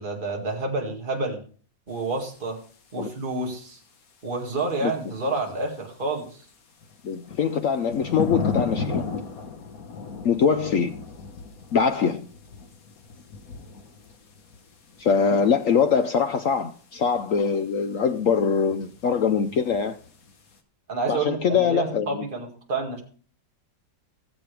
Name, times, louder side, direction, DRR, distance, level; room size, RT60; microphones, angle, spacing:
voice 1, 0.0-1.4 1.9-2.6 2.9-3.8 4.2-6.4 20.9-23.0, right 3 dB, 25° right, 2.1 m, -29 dB
sound 1, 2.0-3.3 3.7-3.8 4.5-5.8 6.2-20.6, left 5 dB, 50° left, 1.7 m, -36 dB
voice 2, 7.0-9.1 10.2-11.0 11.7-12.3 15.0-20.0 21.1-22.2, left 6 dB, 70° left, 0.8 m, -23 dB
18.5 x 7.3 x 3.3 m
omnidirectional pair, 2.1 m